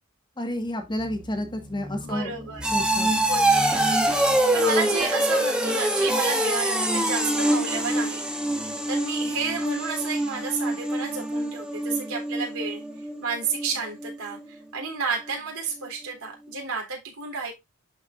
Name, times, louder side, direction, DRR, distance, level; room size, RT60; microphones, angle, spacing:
voice 1, 0.4-2.3 2.7-3.1, left 1 dB, 20° left, 1.5 m, -30 dB
sound 1, 1.0-13.7 14.0-14.4 14.8-14.9, right 1 dB, 5° right, 1.3 m, -25 dB
voice 2, 2.0-2.7 3.3-8.2 8.9-12.8 13.2-17.5, right 5 dB, 75° right, 3.5 m, -31 dB
11.5 x 4.7 x 2.5 m
head